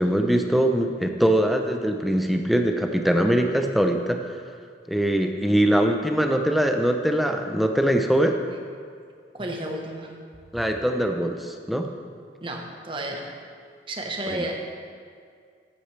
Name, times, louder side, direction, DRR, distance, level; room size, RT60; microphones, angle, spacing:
voice 1, 0.0-4.2 4.9-8.4 10.5-11.9 14.3-14.4, right 1 dB, ahead, 4 dB, 0.6 m, -22 dB
voice 2, 9.3-10.1 12.4-13.3 13.9-14.5, right 1 dB, 30° right, 1 dB, 1.1 m, -32 dB
14.0 x 8.8 x 3.3 m, 2.1 s
head